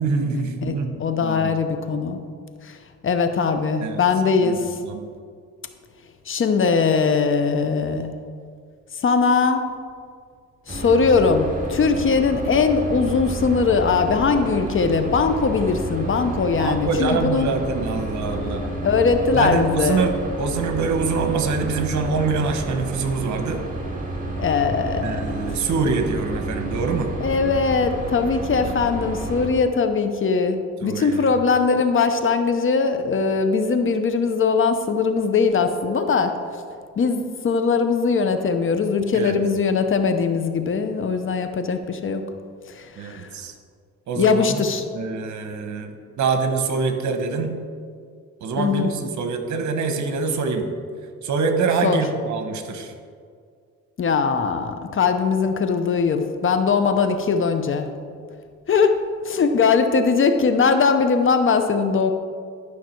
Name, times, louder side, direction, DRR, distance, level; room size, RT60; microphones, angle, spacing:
voice 1, 0.0-1.5 3.8-4.0 4.4-4.5 4.8-5.1 16.6-18.7 19.3-23.6 25.0-27.1 28.6-28.7 30.8-31.3 39.1-39.4 43.0-43.5 44.1-44.5 44.9-45.9 46.2-47.6 48.4-50.7 51.2-52.9, right 4 dB, 70° right, 6 dB, 1.1 m, -25 dB
voice 2, 1.0-2.2 2.6-2.8 3.0-4.8 6.3-8.1 9.0-9.6 10.7-17.5 18.8-20.0 24.4-25.3 27.2-36.4 37.0-42.2 42.7-43.3 44.1-44.8 48.6-48.9 51.8-52.0 54.0-57.9 58.7-62.1, left 5 dB, 40° left, 8 dB, 0.8 m, -20 dB
sound 1, 10.7-29.5, right 2 dB, 25° right, 1.9 m, -30 dB
12.0 x 5.9 x 4.5 m, 2.1 s
cardioid pair, 90°, 30 cm